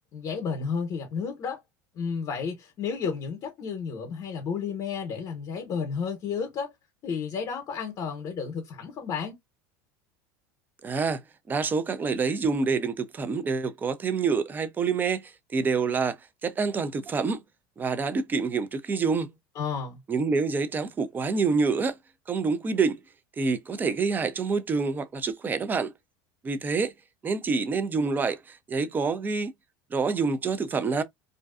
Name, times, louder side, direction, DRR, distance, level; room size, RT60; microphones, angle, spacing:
voice 1, 0.1-1.6 1.9-6.7 7.0-9.4 19.6-20.0, left 6 dB, 45° left, 0.9 m, -32 dB
voice 2, 10.8-11.2 11.5-16.2 16.4-17.4 17.8-19.3 20.1-22.0 22.3-23.0 23.4-25.9 26.4-26.9 27.2-29.5 29.9-31.0, right 4 dB, 20° right, 0.4 m, -27 dB
2.5 x 2.2 x 2.3 m
supercardioid pair, 120°, 9 cm